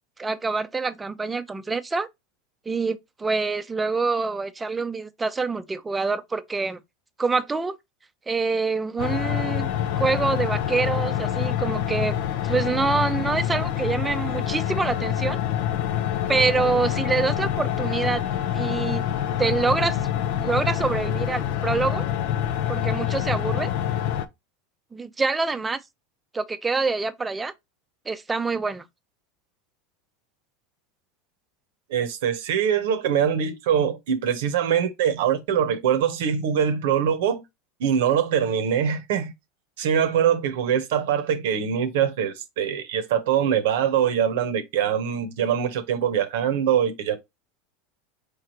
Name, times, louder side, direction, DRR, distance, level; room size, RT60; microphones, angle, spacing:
voice 1, 0.2-2.1 2.7-6.8 7.2-7.7 8.3-9.7 10.0-12.2 12.4-15.4 16.3-18.2 18.5-19.0 19.4-20.0 20.4-22.1 22.7-23.7 24.9-25.8 26.3-27.5 28.1-28.8, right 4 dB, 15° right, 0.5 m, -26 dB
sound 1, 9.0-24.3, left 10 dB, 65° left, 0.5 m, -26 dB
voice 2, 31.9-37.4 37.8-39.3 39.8-47.2, right 8 dB, 75° right, 0.8 m, -23 dB
4.8 x 3.2 x 2.9 m
hypercardioid pair, 105°, 0 cm